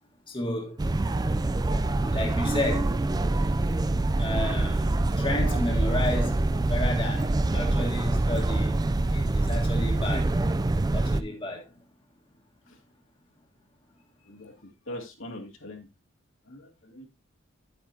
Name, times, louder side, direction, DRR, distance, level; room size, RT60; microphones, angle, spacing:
voice 1, 0.3-0.8 2.1-3.0 4.2-6.4 6.7-8.8 9.1-10.4 10.9-11.7, left 1 dB, 25° left, 1.7 m, -32 dB
sound 1, 0.8-11.2, right 2 dB, 20° right, 0.4 m, -25 dB
voice 2, 14.2-15.9 16.4-17.1, left 1 dB, 70° left, 2.4 m, -42 dB
10.0 x 8.9 x 2.8 m
head